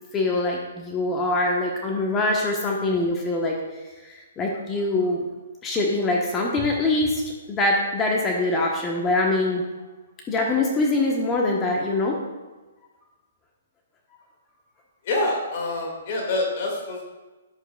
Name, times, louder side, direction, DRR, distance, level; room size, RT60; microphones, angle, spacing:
voice 1, 0.1-3.6 4.0-5.2 5.6-7.2 7.5-9.6 10.3-12.2, left 2 dB, 20° left, 0 dB, 1.1 m, -23 dB
voice 2, 15.1-17.0, left 2 dB, 50° left, 0 dB, 2.2 m, -26 dB
10.5 x 7.9 x 2.4 m, 1.2 s
hypercardioid pair, 135°, 0 cm